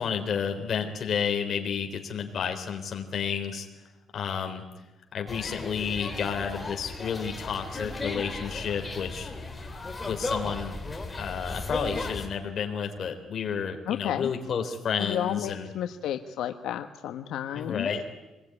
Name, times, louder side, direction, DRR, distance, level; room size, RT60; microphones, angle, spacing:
voice 1, 0.0-3.8 4.1-4.6 5.1-9.3 10.0-10.8 11.2-15.7 17.5-18.0, left 7 dB, 45° left, 4 dB, 3.7 m, -31 dB
sound 1, 5.3-12.3, left 2 dB, 15° left, 3.2 m, -35 dB
voice 2, 13.9-14.3 15.0-17.9, left 10 dB, 85° left, 7 dB, 1.1 m, -32 dB
25.5 x 21.0 x 9.7 m, 1.0 s
cardioid pair, 165°, 0 cm